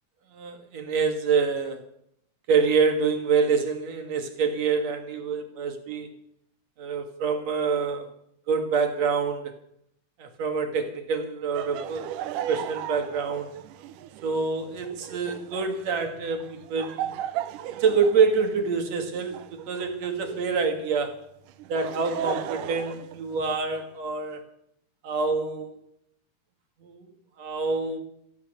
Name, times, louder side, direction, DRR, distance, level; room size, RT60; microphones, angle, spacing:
voice 1, 0.3-1.8 2.5-6.1 6.8-8.1 8.5-9.5 10.2-12.1 12.5-13.5 14.2-17.1 17.8-21.2 21.7-24.4 25.0-25.8 26.8-27.1 27.4-28.0, right 5 dB, 60° right, 6 dB, 2.9 m, -26 dB
Laughter, 11.5-20.6 21.5-23.8, right 12 dB, 80° right, 2.4 m, -36 dB
15.0 x 14.5 x 6.6 m, 0.72 s
omnidirectional pair, 3.7 m